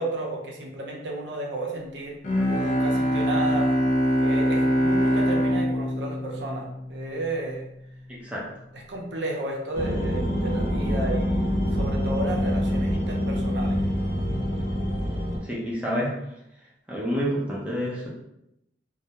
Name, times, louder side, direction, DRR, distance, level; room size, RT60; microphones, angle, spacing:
voice 1, 0.0-2.2 2.5-3.7 4.2-7.6 8.7-13.9, right 2 dB, 90° right, -1 dB, 0.5 m, -33 dB
Bowed string instrument, 2.2-7.4, equal, 45° left, 0.4 m, -23 dB
voice 2, 8.1-8.4 15.4-16.1 16.9-18.1, equal, 10° right, -6 dB, 0.5 m, -28 dB
sound 1, 9.7-15.4, equal, 80° left, 0.8 m, -26 dB
2.2 x 2.1 x 2.8 m, 0.82 s
head